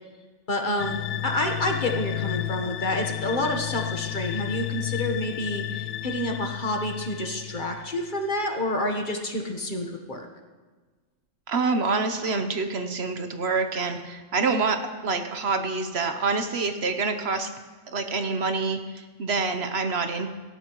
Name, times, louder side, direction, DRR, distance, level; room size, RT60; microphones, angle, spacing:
voice 1, 0.5-10.3, left 1 dB, 40° left, 3 dB, 1.3 m, -29 dB
sound 1, 0.8-8.3, left 13 dB, 75° left, 0.9 m, -32 dB
voice 2, 11.5-17.5 17.9-20.3, right 4 dB, 60° right, 7 dB, 1.0 m, -27 dB
18.0 x 14.0 x 3.0 m, 1.4 s
omnidirectional pair, 1.3 m